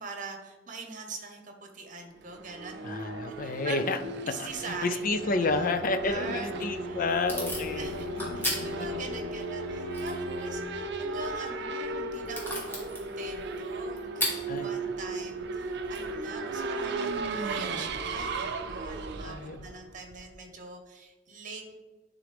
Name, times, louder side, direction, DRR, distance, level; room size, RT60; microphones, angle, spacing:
voice 1, 0.0-2.8 3.4-4.0 4.2-6.5 6.8-7.1 7.8-8.1 8.3-21.7, right 3 dB, 45° right, 4 dB, 1.0 m, -43 dB
Race car auto racing / Accelerating revving vroom, 2.2-20.4, right 3 dB, 65° right, 0.5 m, -36 dB
voice 2, 2.8-4.0 4.4-7.9 8.2-8.7 14.5-14.7 19.2-19.6, left 3 dB, 50° left, 9 dB, 0.5 m, -30 dB
Bowed string instrument, 5.2-10.8, left 2 dB, 10° right, 2.3 m, -41 dB
Packing tape duct tape / Tearing, 6.4-17.2, equal, 10° left, 1.9 m, -40 dB
11.0 x 3.8 x 3.4 m, 1.2 s
head